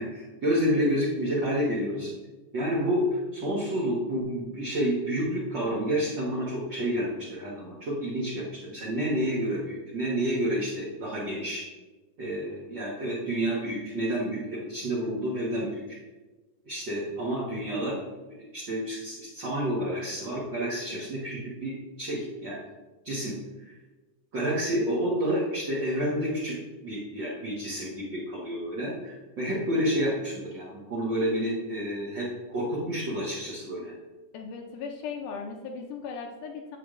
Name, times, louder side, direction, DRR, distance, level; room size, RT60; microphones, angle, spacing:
voice 1, 0.0-2.1 2.5-11.6 12.2-15.8 16.6-18.0 18.4-22.6 23.0-23.7 24.3-26.6 26.8-33.9, equal, 65° right, -7 dB, 1.1 m, -29 dB
voice 2, 34.3-36.8, left 5 dB, 80° left, 3 dB, 1.9 m, -37 dB
7.9 x 6.9 x 2.5 m, 1.2 s
omnidirectional pair, 3.9 m